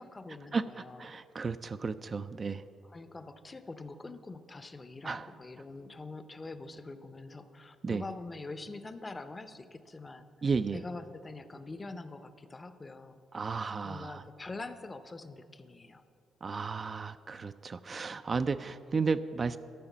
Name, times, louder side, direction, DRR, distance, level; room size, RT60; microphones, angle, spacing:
voice 1, 0.0-1.1 2.8-10.3 10.7-13.2 13.8-16.0, left 3 dB, 25° left, 11 dB, 0.6 m, -44 dB
voice 2, 1.0-2.6 5.0-5.3 7.8-8.0 10.4-10.8 13.3-14.2 16.4-19.6, right 4 dB, 35° right, 11 dB, 0.3 m, -33 dB
12.5 x 5.0 x 7.2 m, 2.6 s
cardioid pair, 90°, 0 cm